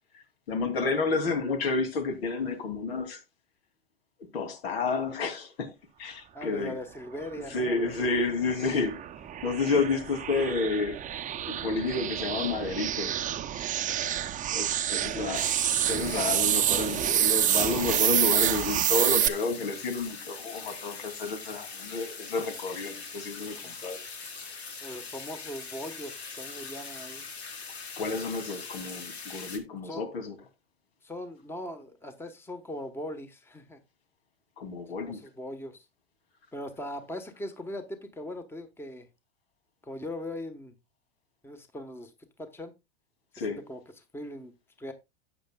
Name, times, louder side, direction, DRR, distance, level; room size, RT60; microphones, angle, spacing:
voice 1, 0.1-3.2 4.2-5.7 6.0-6.7 7.5-9.0 9.4-11.0 11.3-13.1 13.5-13.7 14.5-15.5 15.9-24.0 24.3-24.4 28.0-30.3 34.6-35.2 43.3-43.6, left 4 dB, 70° left, 2.9 m, -30 dB
voice 2, 6.3-8.1 14.9-15.3 23.5-23.8 24.8-27.3 29.8-30.1 31.0-33.8 35.0-35.9 36.5-39.1 39.8-40.7 41.4-42.1 42.4-42.7 43.4-44.5 44.8-44.9, left 1 dB, 5° left, 1.3 m, -40 dB
sound 1, 7.7-19.3, right 11 dB, 25° right, 0.8 m, -28 dB
sound 2, 15.3-29.6, left 5 dB, 90° left, 2.3 m, -42 dB
12.5 x 8.4 x 2.4 m
hypercardioid pair, 105°, 31 cm